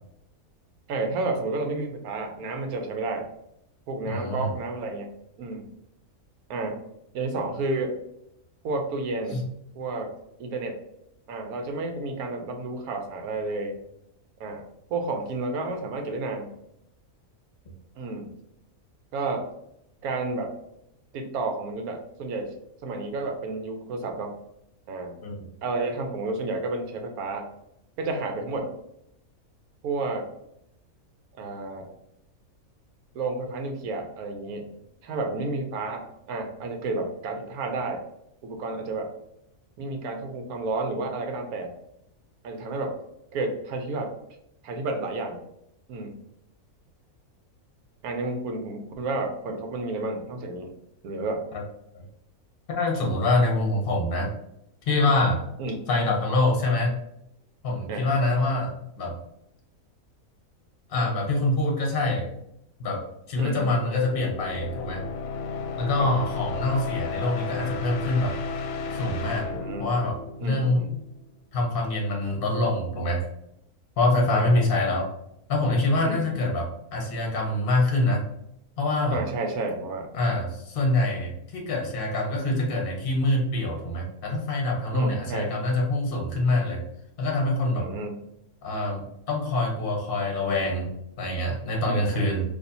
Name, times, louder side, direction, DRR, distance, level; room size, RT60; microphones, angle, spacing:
voice 1, 0.9-3.3 3.9-5.1 5.4-5.7 6.5-6.8 7.1-7.9 8.6-9.4 9.7-10.1 10.4-10.8 11.3-13.8 14.4-14.6 14.9-16.5 18.0-18.3 19.1-19.5 20.0-20.5 21.1-22.5 22.8-24.3 24.9-25.1 25.6-27.5 28.0-28.7 29.8-30.3 31.4-31.9 33.1-34.7 35.0-38.0 38.4-39.1 39.8-41.7 42.4-42.9 43.3-44.1 44.6-45.4 45.9-46.2 48.0-50.7 51.0-51.4 55.6-55.8 57.9-58.1 63.4-63.7 66.0-66.1 69.5-69.9 70.4-71.0 74.3-74.5 76.0-76.4 79.1-80.1 82.4-82.7 84.9-85.5 87.8-88.2 91.8-92.2, right 3 dB, 80° right, 4 dB, 1.1 m, -31 dB
voice 2, 4.1-4.5 9.3-9.4 25.2-25.4 51.9-52.0 52.7-54.3 54.9-55.4 55.9-57.0 57.6-59.2 60.9-62.3 62.8-65.0 65.8-68.4 68.9-69.5 69.8-70.2 70.4-70.9 71.5-73.2 74.0-75.1 75.5-78.2 78.8-79.2 80.1-86.8 87.2-87.9 88.6-90.9 91.2-92.4, left 2 dB, 45° left, -1 dB, 1.0 m, -25 dB
sound 1, 63.5-71.2, left 4 dB, 75° left, 1.0 m, -34 dB
4.3 x 2.8 x 2.6 m, 0.79 s
omnidirectional pair, 1.5 m